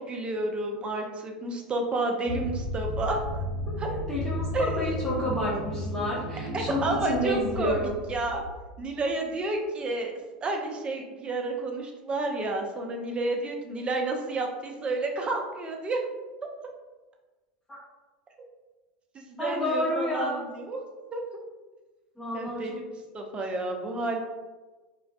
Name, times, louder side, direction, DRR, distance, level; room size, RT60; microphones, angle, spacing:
voice 1, 0.0-3.2 3.8-3.9 4.5-5.2 6.5-8.4 8.8-10.1 10.4-16.0 19.1-20.8 21.1-21.2 22.3-22.8 23.1-24.2, right 2 dB, 25° right, 2 dB, 0.4 m, -30 dB
sound 1, 2.3-9.1, equal, 70° right, 0.6 m, -34 dB
voice 2, 3.7-7.9 17.7-17.8 19.4-20.4 22.2-22.8, left 1 dB, 15° left, -8 dB, 0.7 m, -30 dB
2.5 x 2.2 x 2.2 m, 1.2 s
figure-of-eight pair, 75°, 4 cm